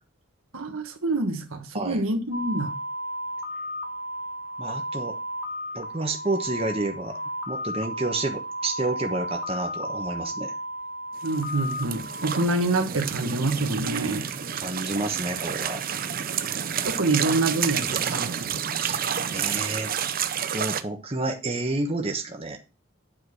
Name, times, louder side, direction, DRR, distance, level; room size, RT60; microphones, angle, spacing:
voice 1, 0.5-2.7 11.2-14.3 16.8-18.6, right 2 dB, 85° right, 1.6 m, -26 dB
sound 1, 2.3-12.4, equal, 90° left, 1.6 m, -33 dB
voice 2, 4.6-5.2 5.7-7.2 7.5-10.5 14.5-15.8 18.8-19.0 19.3-19.9 20.5-22.6, right 2 dB, 30° right, 1.2 m, -30 dB
sound 2, 11.2-20.8, right 8 dB, 45° right, 0.6 m, -30 dB
9.4 x 4.8 x 4.7 m
head